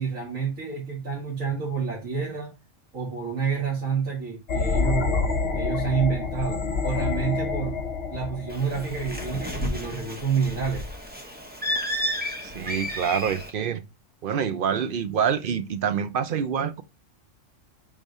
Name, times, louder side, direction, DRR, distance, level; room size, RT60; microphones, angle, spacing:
voice 1, 0.0-2.5 2.9-5.2 5.5-7.8 8.1-10.8, right 6 dB, 90° right, 2.4 m, -28 dB
sound 1, 4.5-9.9, left 4 dB, 50° left, 1.0 m, -28 dB
Bird, 8.5-13.5, equal, 10° right, 0.9 m, -32 dB
voice 2, 12.4-13.8 14.2-16.8, right 7 dB, 55° right, 0.7 m, -26 dB
5.2 x 3.6 x 5.3 m
omnidirectional pair, 1.3 m